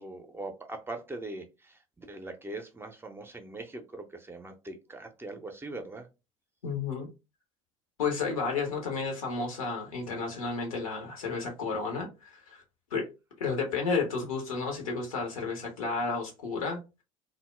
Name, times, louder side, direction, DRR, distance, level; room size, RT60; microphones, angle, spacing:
voice 1, 0.0-6.1, right 2 dB, 15° right, 0.5 m, -41 dB
voice 2, 6.6-7.1 8.0-12.6 12.9-13.1 13.4-16.8, left 4 dB, 80° left, 0.8 m, -32 dB
2.1 x 2.0 x 3.0 m
figure-of-eight pair, 65°, 18 cm